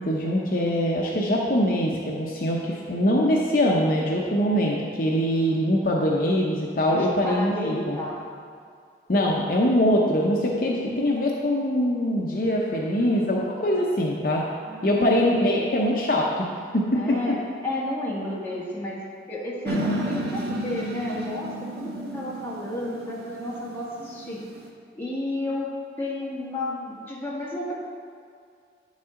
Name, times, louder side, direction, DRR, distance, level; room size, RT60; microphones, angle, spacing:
voice 1, 0.0-8.0 9.1-14.4 14.8-17.0, equal, 50° left, -2 dB, 0.7 m, -23 dB
voice 2, 6.9-8.2 14.7-15.7 16.9-17.4 17.6-19.0 19.3-24.4 24.9-27.7, left 1 dB, 15° left, -7 dB, 1.6 m, -32 dB
sound 1, 19.6-24.7, right 1 dB, 65° right, 1.1 m, -32 dB
9.6 x 7.4 x 3.7 m, 2.2 s
head